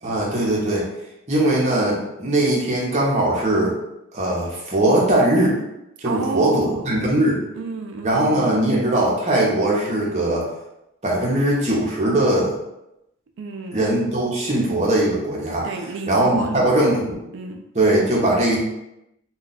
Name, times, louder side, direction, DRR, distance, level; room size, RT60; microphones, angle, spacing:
voice 1, 0.0-0.9 1.3-3.8 4.1-5.6 6.0-7.4 8.0-10.5 11.0-12.6 13.7-15.7 16.1-17.2 17.7-18.6, right 1 dB, 30° right, -4 dB, 0.7 m, -20 dB
voice 2, 6.0-7.3 7.5-8.7 13.4-13.9 15.6-16.9 17.3-17.6, right 4 dB, 55° right, 4 dB, 0.3 m, -31 dB
2.3 x 2.2 x 3.9 m, 0.88 s
head